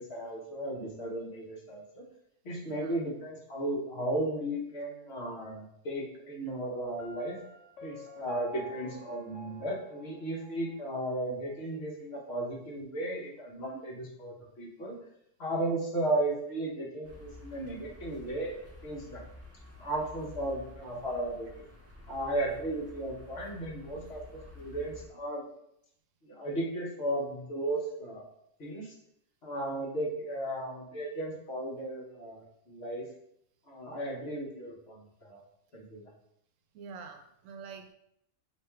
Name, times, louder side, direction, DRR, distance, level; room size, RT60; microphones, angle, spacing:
voice 1, 0.0-2.0 2.4-7.4 7.8-14.9 15.4-18.6 18.8-19.2 19.8-21.6 22.1-25.4 26.2-28.3 28.6-28.9 29.4-33.0 33.7-35.4 35.7-36.1, right 1 dB, 60° left, -3 dB, 1.2 m, -35 dB
voice 2, 2.7-3.0 36.7-37.9, right 5 dB, 80° right, 6 dB, 1.0 m, -46 dB
Piano, 7.0-10.8, right 1 dB, 75° left, 1.1 m, -46 dB
sound 1, 17.0-25.1, left 2 dB, 15° right, 0.6 m, -50 dB
3.4 x 2.9 x 4.4 m, 0.76 s
omnidirectional pair, 1.3 m